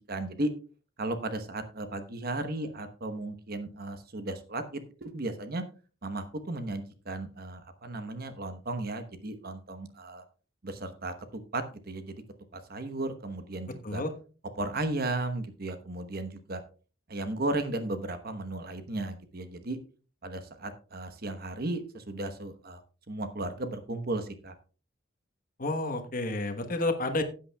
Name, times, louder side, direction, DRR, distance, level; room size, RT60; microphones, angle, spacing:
voice 1, 0.1-0.5 1.0-5.6 6.0-10.2 10.6-12.2 12.5-14.0 14.6-16.6 17.1-19.8 20.2-22.8 23.1-24.5, right 2 dB, 50° right, 9 dB, 1.1 m, -35 dB
voice 2, 25.6-27.2, left 2 dB, 45° left, 7 dB, 1.2 m, -30 dB
15.5 x 8.6 x 2.3 m, 0.37 s
head